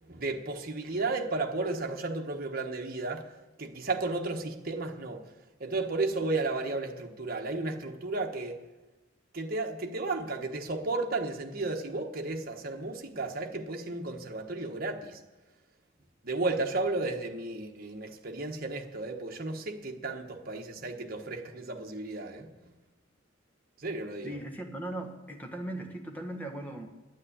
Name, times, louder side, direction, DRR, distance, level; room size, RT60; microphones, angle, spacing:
voice 1, 0.0-3.3 3.6-5.3 5.6-8.7 9.3-15.2 16.2-22.5 23.8-24.4, right 3 dB, 50° right, 1.3 m, -33 dB
voice 2, 24.2-26.9, right 1 dB, 10° left, 1.5 m, -38 dB
9.8 x 9.8 x 8.6 m
head